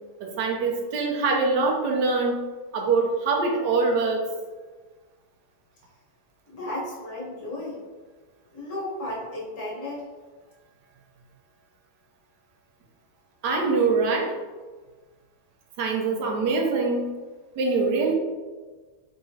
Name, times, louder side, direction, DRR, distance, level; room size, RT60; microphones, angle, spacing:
voice 1, 0.2-2.4 2.7-4.2 13.4-14.3 15.8-17.1 17.6-18.1, right 4 dB, 65° right, 1 dB, 1.2 m, -23 dB
voice 2, 6.5-7.8 8.5-10.0, left 1 dB, 40° left, -6 dB, 1.6 m, -34 dB
4.7 x 3.9 x 2.7 m, 1.3 s
omnidirectional pair, 2.2 m